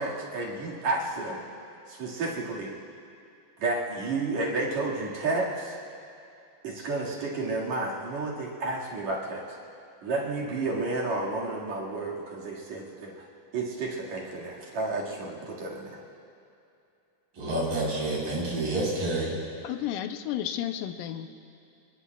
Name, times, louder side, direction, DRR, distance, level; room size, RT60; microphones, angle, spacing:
voice 1, 0.0-1.4 1.9-2.7 3.6-5.8 6.6-9.6 10.0-13.1 13.5-16.0, right 3 dB, 55° right, -4 dB, 3.2 m, -31 dB
voice 2, 17.3-19.4, right 2 dB, 75° right, -5 dB, 5.9 m, -28 dB
voice 3, 19.6-21.3, left 11 dB, 80° left, 8 dB, 2.3 m, -32 dB
28.0 x 21.0 x 2.3 m, 2.7 s
omnidirectional pair, 3.9 m